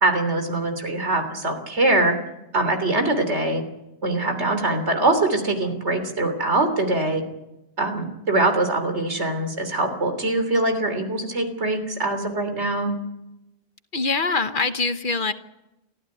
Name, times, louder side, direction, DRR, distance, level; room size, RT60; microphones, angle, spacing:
voice 1, 0.0-2.2 2.5-3.6 4.0-7.2 7.8-12.9, right 2 dB, 85° right, 7 dB, 3.6 m, -23 dB
voice 2, 13.9-15.3, left 3 dB, 50° left, 10 dB, 1.2 m, -23 dB
24.0 x 15.0 x 9.5 m, 0.93 s
omnidirectional pair, 1.1 m